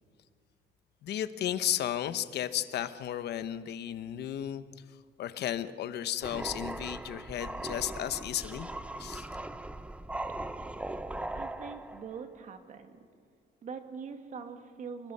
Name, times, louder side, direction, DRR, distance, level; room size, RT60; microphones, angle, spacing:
voice 1, 1.0-4.6 5.2-8.7 9.0-9.3, left 11 dB, 60° left, 12 dB, 1.0 m, -34 dB
sound 1, 6.2-12.2, right 1 dB, 5° right, 0.6 m, -39 dB
voice 2, 11.3-13.1 13.6-15.1, right 6 dB, 40° right, 7 dB, 1.9 m, -43 dB
29.5 x 20.5 x 5.5 m, 2.1 s
cardioid pair, 165°, 19 cm